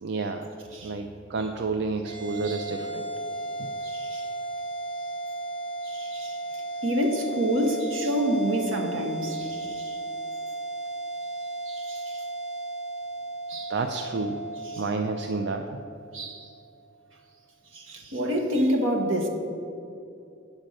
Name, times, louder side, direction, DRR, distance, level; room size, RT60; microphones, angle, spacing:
voice 1, 0.0-0.5 0.8-3.1 3.6-3.7 13.7-14.4 14.8-15.7, right 3 dB, 60° right, 5 dB, 0.4 m, -30 dB
sound 1, 2.0-16.6, right 2 dB, 40° right, 2.0 m, -35 dB
voice 2, 3.8-4.3 5.8-6.4 6.8-10.0 11.7-12.2 13.5-13.7 14.6-14.8 16.1-16.5 17.7-19.3, equal, 80° right, 3 dB, 1.2 m, -28 dB
8.9 x 5.2 x 6.3 m, 2.6 s
head